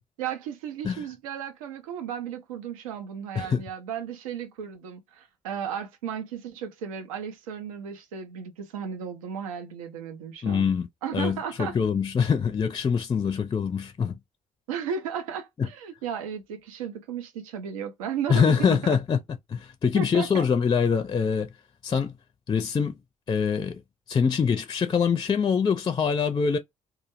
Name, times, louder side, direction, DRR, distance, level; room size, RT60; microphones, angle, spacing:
voice 1, 0.2-10.7 11.0-11.8 14.7-19.0 19.9-20.4, right 8 dB, 75° right, 0.4 m, -34 dB
voice 2, 10.4-10.9 11.1-14.2 18.3-19.2 19.5-21.5 21.8-22.1 22.5-23.0 23.3-23.8 24.1-26.6, left 6 dB, 25° left, 0.4 m, -24 dB
2.3 x 2.0 x 2.9 m
figure-of-eight pair, 40°, 18 cm